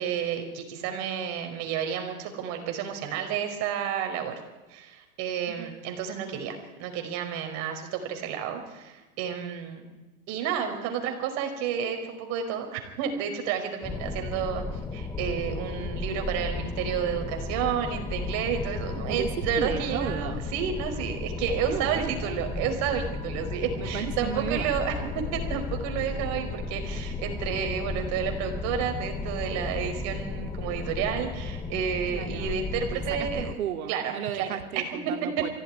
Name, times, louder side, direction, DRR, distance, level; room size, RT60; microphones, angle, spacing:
voice 1, 0.0-4.3 4.7-9.9 10.3-24.9 25.3-33.5 33.9-34.5, right 8 dB, 35° right, 4 dB, 5.0 m, -31 dB
sound 1, 13.8-33.5, left 3 dB, 10° left, 0.8 m, -34 dB
voice 2, 19.1-20.4 21.7-22.5 23.8-24.8 32.1-32.6 32.9-35.5, right 9 dB, 75° right, 6 dB, 2.7 m, -34 dB
23.5 x 16.5 x 9.9 m, 1.2 s
supercardioid pair, 145°, 43 cm